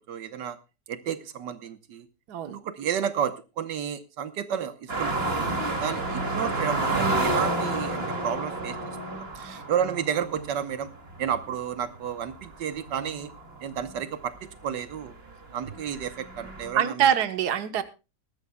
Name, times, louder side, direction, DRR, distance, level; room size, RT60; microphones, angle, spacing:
voice 1, 0.1-0.6 0.9-2.1 2.4-5.3 5.8-9.0 9.7-10.9 11.2-13.3 13.6-15.1 15.5-17.1, right 8 dB, 90° right, 11 dB, 1.7 m, -31 dB
sound 1, 4.9-14.0 14.4-14.5 14.9-16.7, right 2 dB, 35° right, 2.7 m, -30 dB
voice 2, 16.7-17.8, right 9 dB, 70° right, 11 dB, 1.6 m, -25 dB
20.5 x 13.5 x 2.2 m, 0.30 s
omnidirectional pair, 1.8 m